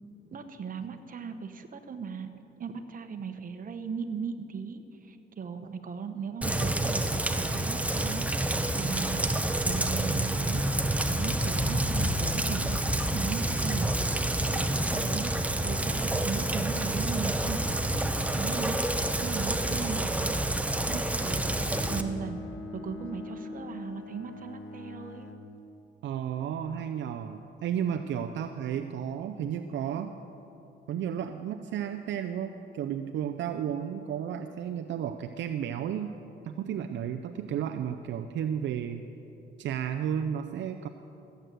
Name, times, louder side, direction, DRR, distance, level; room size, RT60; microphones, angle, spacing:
voice 1, 0.3-2.3 2.6-8.2 8.7-9.3 9.6-10.6 11.1-13.9 14.5-15.3 15.6-20.6 20.9-21.5 21.9-22.4 22.7-25.3, right 6 dB, 45° right, 7 dB, 1.1 m, -37 dB
Rain, 6.4-22.0, right 1 dB, 5° right, 0.8 m, -28 dB
Bowed string instrument, 20.7-25.6, left 4 dB, 80° left, 1.0 m, -43 dB
voice 2, 26.0-30.1 30.9-36.1 36.4-39.0 39.6-40.9, right 9 dB, 70° right, 7 dB, 0.6 m, -33 dB
15.0 x 8.1 x 7.6 m, 2.9 s
cardioid pair, 90°, 20 cm